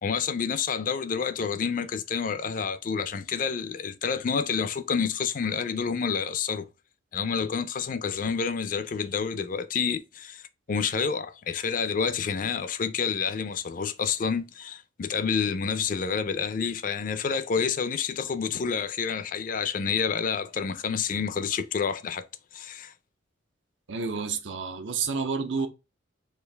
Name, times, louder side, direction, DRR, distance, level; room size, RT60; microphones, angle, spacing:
voice 1, 0.0-6.7 7.1-10.4 10.7-22.2 22.5-22.9, left 6 dB, 45° left, 0.4 m, -28 dB
voice 2, 23.9-25.7, right 5 dB, 75° right, 0.7 m, -29 dB
4.5 x 2.4 x 3.3 m
head